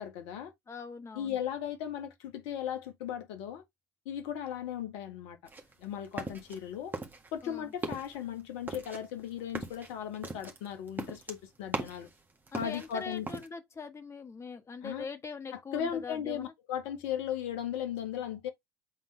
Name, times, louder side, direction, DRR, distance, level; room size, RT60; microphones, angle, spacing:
voice 1, 0.0-0.5 1.1-3.6 4.0-5.4 5.8-6.9 7.3-12.1 12.5-13.3 14.8-15.1 15.5-18.5, left 9 dB, 60° left, 1.7 m, -37 dB
voice 2, 0.7-1.4 7.4-7.7 12.5-16.5, left 5 dB, 25° left, 1.6 m, -42 dB
sound 1, 5.5-6.6 6.9-7.5 7.7-8.2 8.7-12.1 12.5-13.5, right 3 dB, 15° right, 1.7 m, -39 dB
8.1 x 3.8 x 3.3 m
figure-of-eight pair, 65°, 11 cm